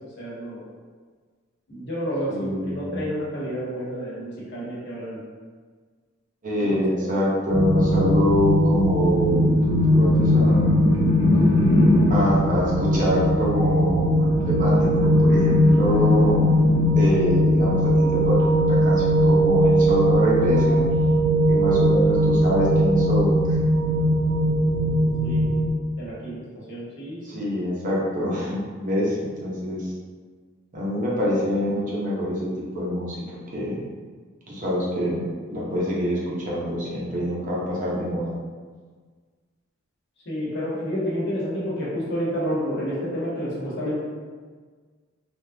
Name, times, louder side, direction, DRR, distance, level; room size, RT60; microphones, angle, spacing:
voice 1, 0.2-0.7 1.7-5.2 6.6-6.8 25.2-25.4 26.0-26.3 26.7-27.4 40.2-43.9, equal, 60° left, -8 dB, 1.1 m, -29 dB
voice 2, 2.3-3.0 6.4-9.5 9.9-10.9 12.1-14.7 15.0-16.4 16.9-17.8 18.3-18.9 19.2-20.8 21.5-23.4 27.2-29.9 30.7-32.4 32.7-33.2 33.5-33.8 34.5-36.2 36.5-38.4, equal, 40° right, -6 dB, 0.7 m, -25 dB
sound 1, 7.5-25.7, equal, 75° right, 0.4 m, -20 dB
sound 2, 9.0-12.3 14.1-16.9, left 1 dB, 30° left, 0.6 m, -24 dB
3.4 x 2.4 x 2.7 m, 1.5 s
head